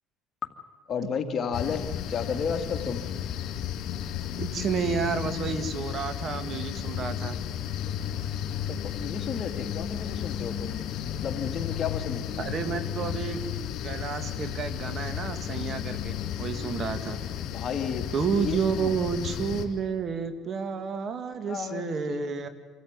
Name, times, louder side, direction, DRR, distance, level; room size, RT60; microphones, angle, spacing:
voice 1, 0.9-3.0 8.7-12.5 17.5-18.1 18.4-18.9 21.4-22.5, left 6 dB, 45° left, 5 dB, 2.2 m, -33 dB
sound 1, 1.5-19.7, left 9 dB, 65° left, 3.1 m, -33 dB
voice 2, 4.4-7.4 12.4-13.4 13.8-17.2 18.1-22.5, right 6 dB, 45° right, 10 dB, 2.1 m, -30 dB
26.5 x 14.0 x 9.5 m, 1.4 s
supercardioid pair, 90°, 0 cm